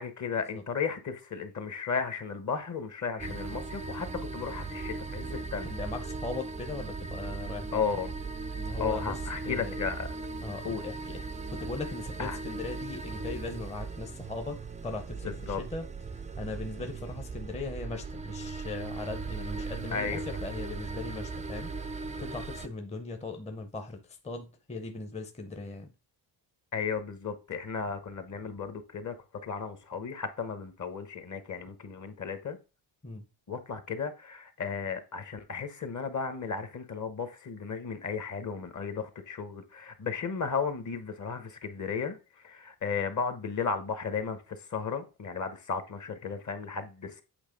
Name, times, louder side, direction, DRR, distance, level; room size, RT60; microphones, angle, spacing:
voice 1, 0.0-4.1 4.3-5.8 7.7-8.1 8.8-10.1 10.6-10.8 12.2-12.4 15.2-15.6 19.9-20.2 26.7-29.1 29.4-32.6 33.5-42.2 42.4-47.2, left 5 dB, 40° left, 1.1 m, -34 dB
sound 1, 3.2-22.7, right 4 dB, 20° right, 0.4 m, -38 dB
voice 2, 5.6-7.9 8.5-9.8 10.4-11.3 11.5-25.9 33.0-33.3, left 3 dB, 15° left, 0.7 m, -39 dB
8.1 x 3.3 x 5.2 m
cardioid pair, 125°, 45 cm